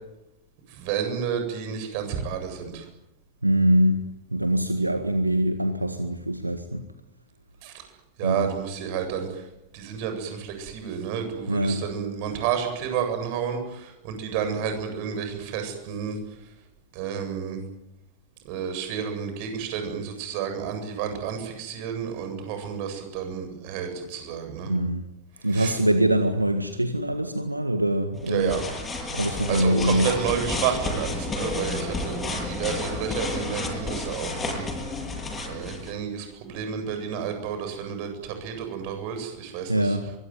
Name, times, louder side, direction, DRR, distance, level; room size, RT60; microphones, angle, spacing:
voice 1, 0.7-2.8 7.6-7.8 8.2-9.4 9.7-16.2 16.9-17.6 18.4-24.7 25.5-25.8 28.3-28.6 29.2-34.6 35.4-40.0, right 7 dB, 45° right, 6 dB, 7.9 m, -30 dB
voice 2, 3.4-4.0 4.3-6.8 8.2-8.5 11.5-11.8 24.7-25.0 25.4-28.6 29.1-30.1 39.7-40.1, right 1 dB, 85° right, 8 dB, 1.7 m, -23 dB
sound 1, 28.2-35.9, left 2 dB, 15° left, 7.9 m, -31 dB
24.0 x 23.0 x 9.6 m, 0.92 s
figure-of-eight pair, 90°, 0 cm